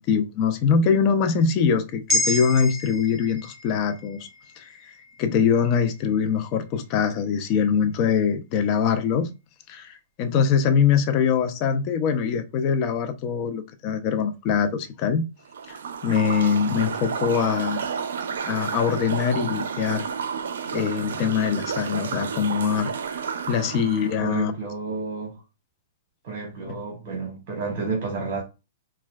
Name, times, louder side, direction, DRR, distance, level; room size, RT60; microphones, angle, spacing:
voice 1, 0.1-4.3 4.6-4.7 5.2-9.3 9.7-15.3 16.0-17.9 18.5-20.0 20.7-22.9 23.5-24.5 26.7-26.8, left 6 dB, 35° left, 0.5 m, -23 dB
sound 1, 2.1-6.6 7.0-7.1, left 2 dB, 25° right, 0.8 m, -31 dB
sound 2, 15.5-24.2, right 6 dB, 80° right, 0.4 m, -31 dB
voice 2, 24.2-25.4 26.2-28.4, right 4 dB, 45° right, 1.1 m, -31 dB
4.3 x 2.2 x 2.3 m
hypercardioid pair, 150°, 0 cm